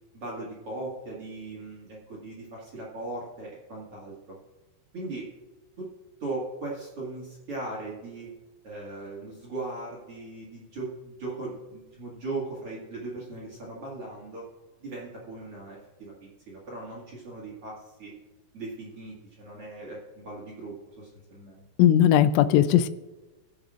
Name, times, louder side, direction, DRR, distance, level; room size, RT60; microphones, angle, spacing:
voice 1, 0.1-4.4 4.9-5.3 5.8-5.9 6.2-8.3 8.6-14.4 14.8-18.1 18.5-21.6, right 2 dB, 45° right, -5 dB, 1.9 m, -38 dB
voice 2, 21.8-22.9, left 11 dB, 85° left, 12 dB, 3.0 m, -18 dB
21.0 x 7.1 x 2.5 m, 1.1 s
omnidirectional pair, 5.3 m